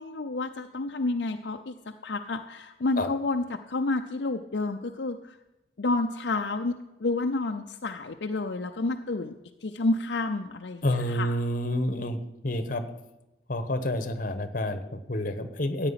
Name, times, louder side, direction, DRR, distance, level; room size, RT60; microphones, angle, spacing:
voice 1, 0.0-1.7 2.0-5.4 5.8-6.7 7.0-9.3 9.6-11.4, left 2 dB, 70° left, 4 dB, 0.6 m, -30 dB
voice 2, 10.8-12.2 12.4-12.8 13.5-15.9, left 1 dB, 50° left, 9 dB, 1.2 m, -28 dB
15.0 x 9.0 x 5.8 m, 0.99 s
head